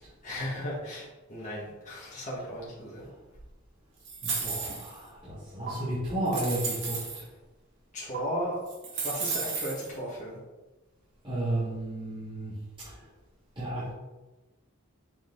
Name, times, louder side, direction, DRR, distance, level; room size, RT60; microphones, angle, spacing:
voice 1, 0.2-3.1 7.9-8.6 8.9-10.4, equal, 35° left, -6 dB, 2.0 m, -35 dB
sound 1, 4.0-5.0 5.7-5.8 6.3-7.2 8.1-8.2 8.7-9.9, right 5 dB, 60° right, 2.2 m, -33 dB
voice 2, 4.2-7.2 11.2-12.5 12.8-12.9 13.6-13.9, right 1 dB, 25° right, -12 dB, 2.6 m, -33 dB
7.4 x 5.0 x 4.1 m, 1.1 s
head